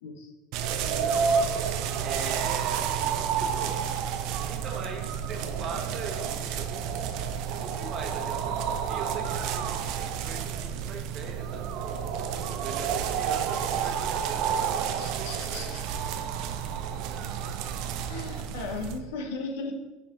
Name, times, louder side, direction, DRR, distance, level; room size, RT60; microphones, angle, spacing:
voice 1, 0.0-0.3 0.8-1.2 13.8-13.9 15.0-15.9 18.1-19.7, left 3 dB, 75° left, 3 dB, 1.0 m, -37 dB
sound 1, 0.5-19.0, right 7 dB, 60° right, 0.5 m, -30 dB
voice 2, 2.0-3.8 4.4-6.9 7.5-9.7 10.0-11.8 12.6-15.7, right 4 dB, 45° right, 3 dB, 1.2 m, -41 dB
5.8 x 4.7 x 3.8 m, 1.1 s
hypercardioid pair, 90°, 0 cm